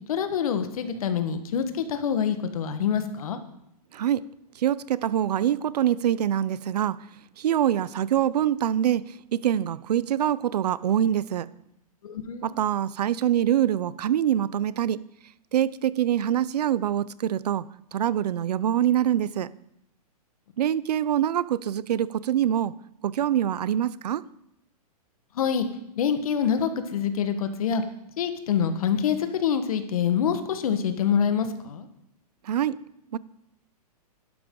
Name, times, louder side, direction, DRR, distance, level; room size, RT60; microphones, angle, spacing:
voice 1, 0.1-3.4 12.0-12.5 25.3-25.7 26.0-27.8 28.2-31.9, left 7 dB, 65° left, 1.4 m, -26 dB
voice 2, 3.9-4.2 4.6-7.1 7.4-11.5 12.4-15.0 15.5-19.5 20.6-22.7 23.0-24.3 32.4-32.8 33.1-33.2, right 10 dB, 85° right, 0.5 m, -25 dB
12.0 x 11.0 x 3.8 m
hypercardioid pair, 160°, 20 cm